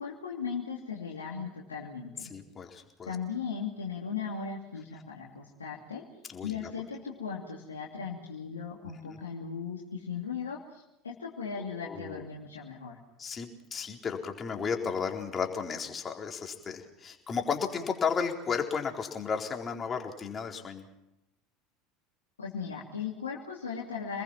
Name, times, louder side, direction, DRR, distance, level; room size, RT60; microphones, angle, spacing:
voice 1, 0.0-2.3 3.1-6.0 6.4-13.0 22.4-24.2, left 6 dB, 85° left, -3 dB, 2.8 m, -37 dB
voice 2, 2.2-3.1 6.3-6.7 9.0-9.2 11.8-12.2 13.2-20.9, left 6 dB, 30° left, 2 dB, 4.2 m, -34 dB
28.0 x 20.5 x 6.0 m, 0.90 s
hypercardioid pair, 75°, 0 cm